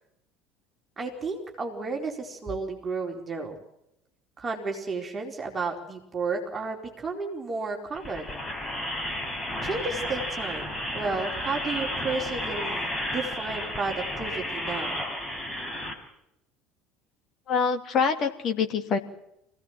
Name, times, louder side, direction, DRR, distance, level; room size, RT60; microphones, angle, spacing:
voice 1, 1.0-3.6 4.4-8.3 9.6-10.7 10.9-15.0, right 4 dB, 25° right, 1 dB, 4.5 m, -32 dB
sound 1, 7.9-15.9, left 1 dB, 15° left, 5.3 m, -32 dB
voice 2, 17.5-19.0, left 5 dB, 40° left, 5 dB, 2.7 m, -25 dB
26.0 x 17.0 x 7.6 m, 0.80 s
figure-of-eight pair, 65°, 0 cm